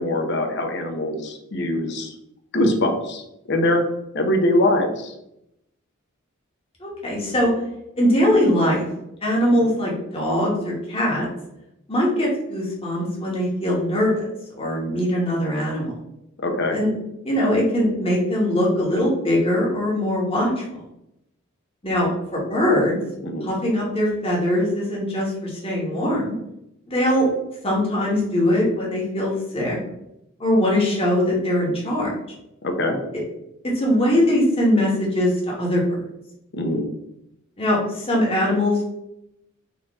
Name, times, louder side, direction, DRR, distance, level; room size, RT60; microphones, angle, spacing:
voice 1, 0.0-2.1 2.5-3.2 3.5-3.8 4.1-5.1 9.6-9.7 16.4-16.8 23.2-23.5 32.6-33.0 36.5-36.8, left 1 dB, 55° left, 4 dB, 0.7 m, -22 dB
voice 2, 6.8-7.5 8.0-8.9 9.2-11.3 11.9-14.2 14.6-15.9 16.7-16.9 17.2-20.6 21.8-23.0 23.4-26.3 26.9-27.3 27.6-29.8 30.4-32.1 33.6-36.0 37.6-38.8, left 1 dB, 25° left, -4 dB, 1.3 m, -21 dB
4.3 x 2.7 x 3.6 m, 0.83 s
head